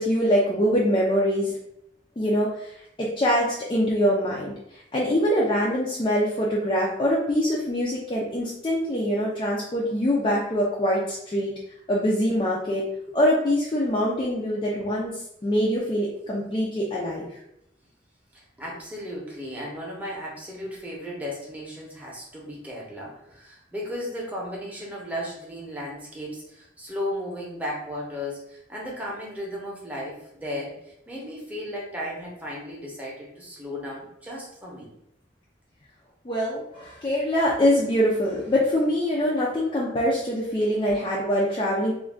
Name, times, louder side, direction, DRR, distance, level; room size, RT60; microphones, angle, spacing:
voice 1, 0.0-1.5 2.2-2.5 3.0-4.5 4.9-11.5 11.9-12.8 13.1-15.1 15.4-17.3 36.3-41.9, equal, 25° left, -5 dB, 0.3 m, -24 dB
voice 2, 18.3-30.8 31.1-34.9, left 1 dB, 10° right, -4 dB, 0.7 m, -35 dB
2.4 x 2.2 x 3.3 m, 0.78 s
head